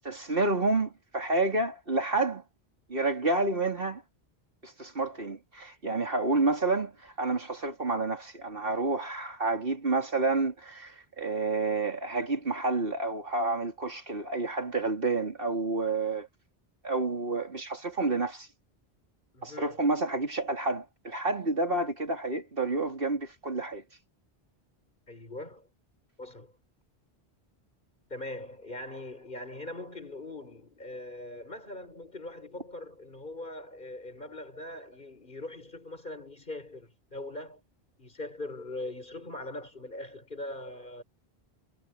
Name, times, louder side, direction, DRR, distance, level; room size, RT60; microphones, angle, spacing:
voice 1, 0.0-2.4 2.9-4.0 4.6-16.3 16.8-18.5 19.4-23.8, right 3 dB, 55° right, 3.7 m, -29 dB
voice 2, 19.3-19.8 25.1-25.7 26.2-26.5 28.1-37.6 38.0-41.0, left 2 dB, 50° left, 5.7 m, -41 dB
omnidirectional pair, 1.1 m